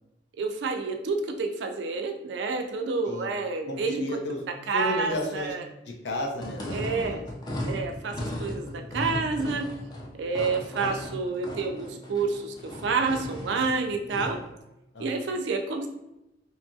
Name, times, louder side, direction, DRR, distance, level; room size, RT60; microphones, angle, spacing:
voice 1, 0.4-4.0 4.7-5.6 6.7-7.2 7.6-9.7 10.2-14.4 15.0-15.9, right 4 dB, 70° right, 5 dB, 0.4 m, -29 dB
voice 2, 3.7-4.4 4.7-5.5 5.9-7.2 14.9-15.4, left 1 dB, 65° left, 1 dB, 0.6 m, -33 dB
sound 1, 6.3-14.4, left 1 dB, 20° left, 0.4 m, -36 dB
2.8 x 2.3 x 2.6 m, 0.90 s
head